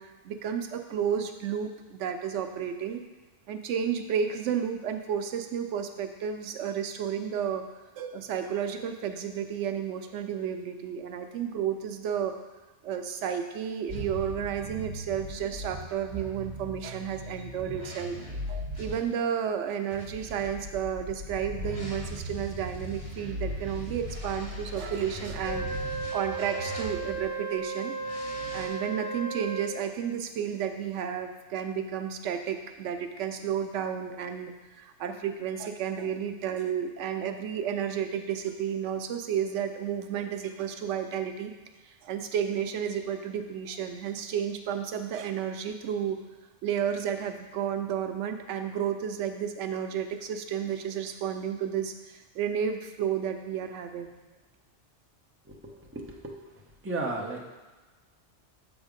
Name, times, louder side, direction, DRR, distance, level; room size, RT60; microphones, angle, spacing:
voice 1, 0.0-3.0 3.5-7.7 8.0-12.4 12.8-18.2 18.5-27.9 28.5-41.5 42.0-46.2 46.6-54.1, right 8 dB, 90° right, 7 dB, 0.9 m, -32 dB
sound 1, 13.9-19.0 19.9-27.3 28.0-28.7, equal, 40° right, 1.7 m, -38 dB
Wind instrument woodwind instrument, 25.4-29.8, right 4 dB, 65° left, 1.1 m, -35 dB
voice 2, 55.4-56.4 56.8-57.4, right 2 dB, 15° right, -2 dB, 0.7 m, -34 dB
7.1 x 3.4 x 5.1 m, 1.2 s
omnidirectional pair, 1.2 m